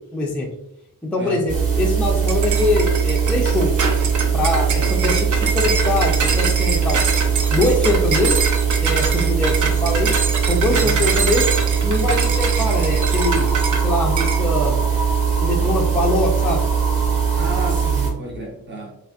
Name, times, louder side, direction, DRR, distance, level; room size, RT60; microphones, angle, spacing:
voice 1, 0.1-0.5 1.0-3.8 4.3-7.0 7.5-8.4 8.8-10.2 10.5-11.5 11.8-13.5 13.8-14.8 15.4-16.6, left 2 dB, 5° left, -1 dB, 0.3 m, -22 dB
sound 1, 1.5-18.1, right 6 dB, 75° right, 1.2 m, -20 dB
sound 2, 2.3-13.8 14.2-14.4, right 4 dB, 55° right, 0.6 m, -24 dB
voice 2, 17.3-19.0, right 2 dB, 30° right, -2 dB, 0.8 m, -30 dB
3.7 x 2.5 x 2.3 m, 0.85 s
wide cardioid pair, 170°, 36 cm